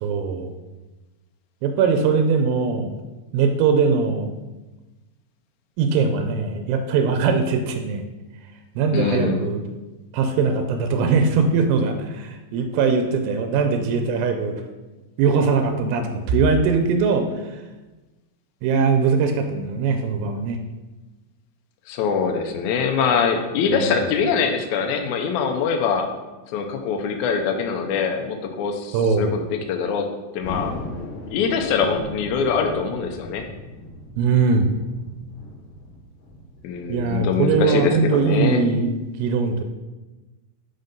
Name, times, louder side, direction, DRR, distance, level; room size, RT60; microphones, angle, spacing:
voice 1, 0.0-0.5 1.6-3.0 3.3-4.3 5.8-8.1 8.8-9.6 10.1-14.6 15.2-17.6 18.6-20.6 23.7-23.9 28.9-29.3 34.2-34.7 36.9-38.9 39.2-39.6, right 5 dB, 85° right, 6 dB, 2.3 m, -21 dB
voice 2, 8.9-9.4 21.9-26.1 26.5-30.1 30.3-30.7 31.3-33.5 36.6-38.6, left 6 dB, 85° left, 4 dB, 1.7 m, -23 dB
Thunder, 30.4-37.3, left 1 dB, 65° left, 1.9 m, -37 dB
5.2 x 4.1 x 5.1 m, 1.1 s
omnidirectional pair, 4.1 m